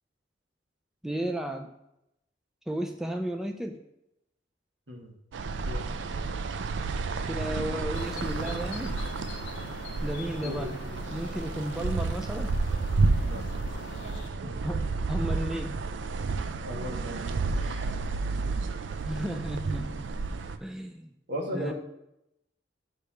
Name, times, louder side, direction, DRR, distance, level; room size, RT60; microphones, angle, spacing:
voice 1, 1.0-1.7 2.7-3.8 7.2-9.0 10.0-10.8 11.1-12.5 14.6-15.8 19.0-20.0 20.6-21.1 21.5-21.7, right 1 dB, 5° right, 3 dB, 0.4 m, -33 dB
sound 1, 5.3-20.6, right 3 dB, 90° right, 0.4 m, -31 dB
sound 2, 7.9-14.3, left 4 dB, 75° left, 0.6 m, -44 dB
voice 2, 9.6-10.0 10.4-11.0 13.2-13.5 14.4-14.6 16.6-17.9 18.4-18.7 21.3-21.7, equal, 70° right, 0 dB, 1.5 m, -38 dB
6.6 x 3.3 x 5.5 m, 0.85 s
head